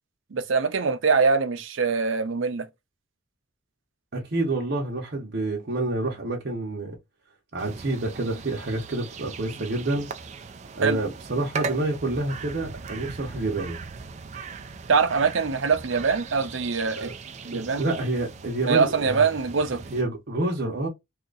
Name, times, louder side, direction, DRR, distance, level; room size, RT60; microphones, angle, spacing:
voice 1, 0.3-2.7 10.8-11.0 14.9-17.1 17.4-17.9 18.7-19.8, right 5 dB, 85° right, 0.6 m, -23 dB
voice 2, 4.1-7.0 7.5-10.1 10.7-13.8 17.0-17.1 17.5-19.3 19.9-20.9, right 2 dB, 55° right, 0.8 m, -28 dB
sound 1, 7.6-20.0, right 5 dB, 35° right, 0.4 m, -39 dB
2.8 x 2.4 x 3.8 m
head